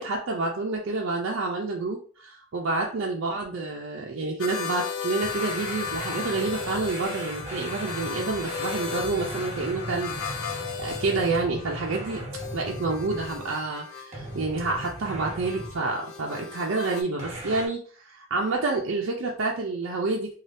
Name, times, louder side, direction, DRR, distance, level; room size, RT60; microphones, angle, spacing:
voice 1, 0.0-10.5 10.8-12.2 12.5-20.3, right 3 dB, 60° right, -1 dB, 0.5 m, -28 dB
sound 1, 4.4-17.0, left 7 dB, 80° left, 0.4 m, -36 dB
sound 2, 5.2-13.7 14.1-15.8 17.2-17.7, right 1 dB, 30° right, 0.8 m, -38 dB
2.6 x 2.3 x 3.3 m, 0.43 s
head